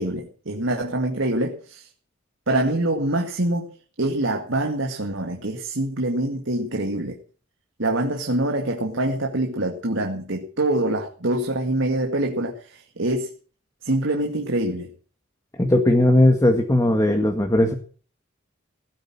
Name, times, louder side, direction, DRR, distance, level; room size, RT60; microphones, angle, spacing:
voice 1, 0.0-1.9 2.5-3.7 4.0-7.2 7.8-13.3 13.8-14.9, right 1 dB, 65° right, 2 dB, 2.2 m, -25 dB
voice 2, 15.6-17.7, left 1 dB, 15° left, 4 dB, 1.8 m, -18 dB
17.0 x 9.3 x 7.6 m, 0.41 s
head